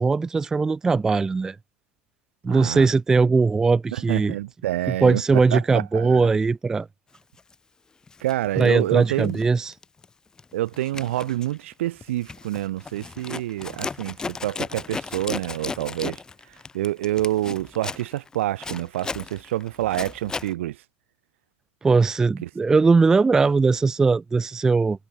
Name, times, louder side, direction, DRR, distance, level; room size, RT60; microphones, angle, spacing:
voice 1, 0.0-1.6 2.4-4.3 5.0-6.9 8.6-9.7 21.8-25.1, right 4 dB, 10° right, 0.4 m, -20 dB
voice 2, 2.4-2.9 3.9-6.3 8.2-9.4 10.5-14.2 14.4-16.2 16.7-20.8 22.4-22.5, right 15 dB, 75° right, 4.1 m, -27 dB
Zipper (clothing), 7.4-7.5 8.1-9.5 9.7-10.1 10.4-20.5, left 4 dB, 10° left, 1.9 m, -35 dB
supercardioid pair, 160°, 7 cm